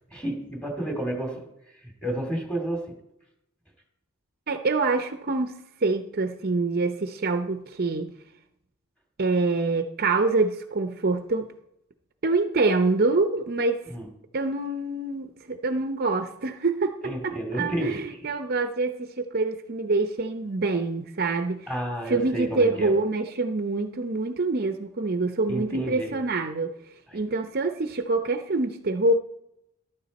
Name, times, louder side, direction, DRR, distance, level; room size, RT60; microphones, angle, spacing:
voice 1, 0.1-1.5 2.0-3.0 13.9-14.1 17.0-18.0 21.7-22.9 25.5-26.1 27.1-27.2, right 1 dB, 5° left, 2 dB, 2.4 m, -30 dB
voice 2, 4.5-8.1 9.2-11.5 12.2-13.8 14.3-21.7 22.1-26.7 27.1-29.1, right 3 dB, 45° right, 8 dB, 0.7 m, -26 dB
14.0 x 12.0 x 4.1 m, 0.80 s
head